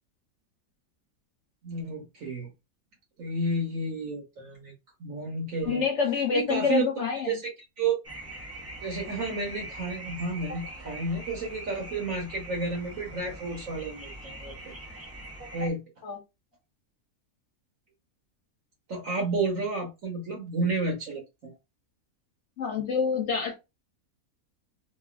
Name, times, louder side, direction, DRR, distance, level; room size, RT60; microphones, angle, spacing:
voice 1, 1.6-2.5 3.2-4.7 5.0-5.8 6.3-6.9 7.3-7.5 7.8-8.0 8.8-14.7 15.5-15.8 18.9-21.5, right 3 dB, 70° right, 1.2 m, -31 dB
voice 2, 5.6-7.3 16.0-16.2 22.6-23.6, left 6 dB, 60° left, 1.0 m, -27 dB
sound 1, 8.0-15.7, right 1 dB, 20° right, 0.4 m, -42 dB
2.9 x 2.4 x 2.4 m
omnidirectional pair, 1.5 m